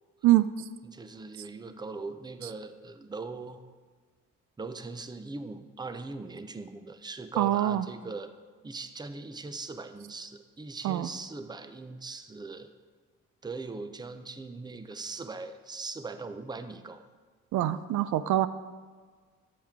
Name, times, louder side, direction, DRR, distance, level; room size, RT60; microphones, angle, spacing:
voice 1, 0.2-0.7 7.4-7.8 10.8-11.1 17.5-18.5, right 13 dB, 75° right, 13 dB, 0.5 m, -24 dB
voice 2, 0.9-3.6 4.6-8.3 8.6-12.7 13.4-17.0, right 3 dB, 15° right, 10 dB, 0.6 m, -40 dB
10.0 x 7.5 x 3.6 m, 1.5 s
cardioid pair, 90°, 30 cm